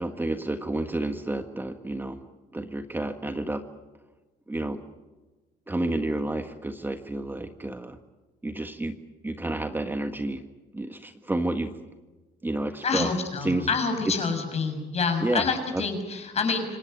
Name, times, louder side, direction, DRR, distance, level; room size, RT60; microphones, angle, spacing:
voice 1, 0.0-2.2 2.5-3.6 4.5-4.8 5.7-8.0 8.4-8.9 9.2-10.4 10.7-11.7 12.4-13.1 13.4-13.7 15.2-15.4 15.7-15.8, right 2 dB, 10° right, 7 dB, 1.5 m, -30 dB
voice 2, 12.8-16.8, left 4 dB, 40° left, 6 dB, 6.6 m, -27 dB
26.5 x 18.5 x 9.2 m, 1.2 s
cardioid pair, 110°, 17 cm